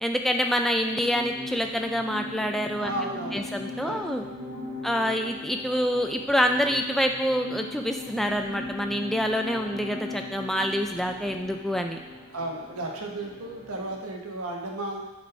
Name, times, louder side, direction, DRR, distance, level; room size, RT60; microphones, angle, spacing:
voice 1, 0.0-2.9 3.3-4.2 4.8-12.0, equal, ahead, 3 dB, 0.3 m, -26 dB
sound 1, 0.8-14.1, left 1 dB, 30° right, 2.2 m, -39 dB
voice 2, 2.8-3.5 3.8-4.1 4.6-4.9 12.3-15.0, right 1 dB, 90° right, 0 dB, 1.2 m, -34 dB
7.7 x 4.2 x 4.7 m, 1.1 s
head